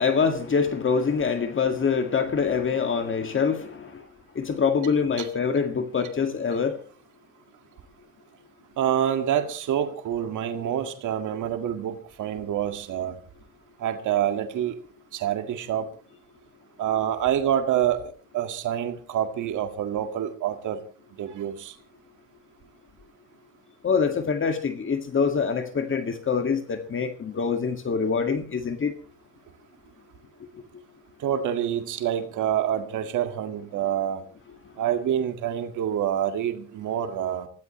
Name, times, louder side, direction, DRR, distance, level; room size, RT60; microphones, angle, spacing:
voice 1, 0.0-4.0 4.4-6.8 23.8-28.9, left 5 dB, 40° left, 7 dB, 2.0 m, -25 dB
voice 2, 8.8-13.2 13.8-14.8 15.1-15.9 16.8-18.1 18.3-20.8 21.2-21.7 31.2-34.2 34.8-37.5, right 10 dB, 80° right, 6 dB, 2.0 m, -27 dB
23.5 x 16.5 x 3.1 m, 0.39 s
cardioid pair, 90°, 30 cm